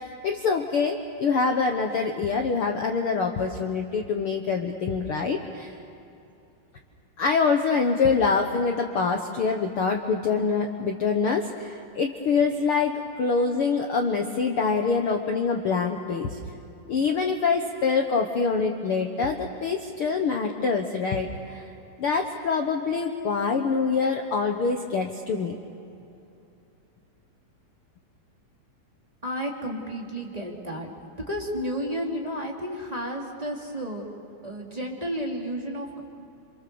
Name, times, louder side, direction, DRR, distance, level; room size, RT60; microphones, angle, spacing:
voice 1, 0.2-5.8 7.2-16.4 16.9-21.7 22.0-25.5, left 5 dB, 85° left, 4 dB, 1.2 m, -25 dB
voice 2, 29.2-30.9 31.3-34.1 34.4-36.0, equal, 10° right, -2 dB, 2.4 m, -32 dB
28.0 x 27.0 x 7.0 m, 2.8 s
omnidirectional pair, 4.3 m